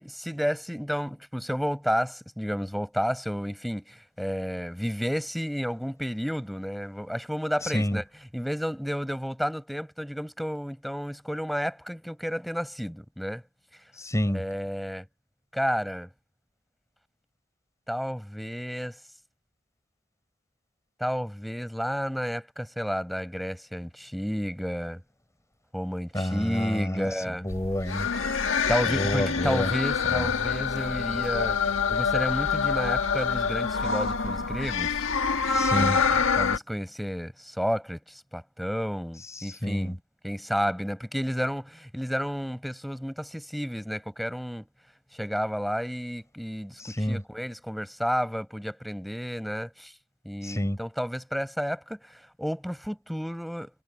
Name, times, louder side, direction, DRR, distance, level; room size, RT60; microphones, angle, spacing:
voice 1, 0.0-8.0 8.3-13.4 14.3-15.0 15.5-16.1 17.9-19.0 21.0-25.0 25.7-27.4 28.7-31.6 31.9-35.0 35.7-40.0 40.2-44.7 45.1-49.9 50.2-53.7, equal, ahead, 6.4 m, -31 dB
voice 2, 7.6-8.0 14.0-14.4 26.1-28.1 28.9-29.7 30.1-30.3 35.5-36.0 39.3-40.0 46.8-47.2 50.4-50.8, equal, 15° left, 7.2 m, -29 dB
sound 1, 27.5-36.6, left 5 dB, 80° left, 1.6 m, -26 dB
head